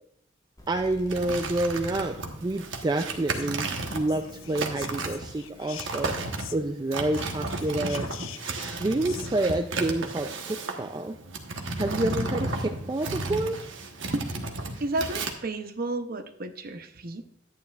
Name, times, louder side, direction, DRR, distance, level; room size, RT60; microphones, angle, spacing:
sound 1, 0.6-7.8, left 3 dB, 20° left, 1.5 m, -53 dB
voice 1, 0.7-6.1 6.5-8.1 8.8-11.2 11.8-13.6, right 2 dB, 20° right, 5 dB, 0.4 m, -28 dB
sound 2, 1.1-15.3, right 2 dB, 70° right, 1.1 m, -33 dB
Whispering, 3.3-6.8 7.1-9.3, left 10 dB, 80° left, 0.6 m, -45 dB
voice 2, 14.8-17.3, right 2 dB, 50° right, 8 dB, 0.8 m, -32 dB
11.0 x 9.4 x 2.4 m, 0.75 s
head